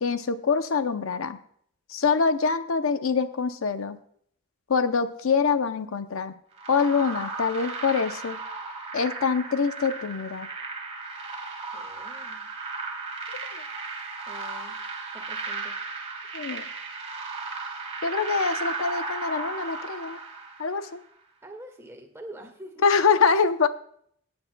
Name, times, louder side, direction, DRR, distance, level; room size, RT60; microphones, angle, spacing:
voice 1, 0.0-1.4 1.9-4.0 4.7-6.3 6.7-8.4 8.9-10.5 16.3-16.7 18.0-20.2 20.6-21.0 22.8-23.7, left 5 dB, 75° left, 10 dB, 0.7 m, -24 dB
sound 1, 6.6-20.9, right 3 dB, 30° right, 1.8 m, -35 dB
voice 2, 11.7-12.5 14.3-14.8 15.1-15.7 21.4-22.8, right 1 dB, 15° right, 3 dB, 1.8 m, -45 dB
18.0 x 9.6 x 2.2 m, 0.64 s
head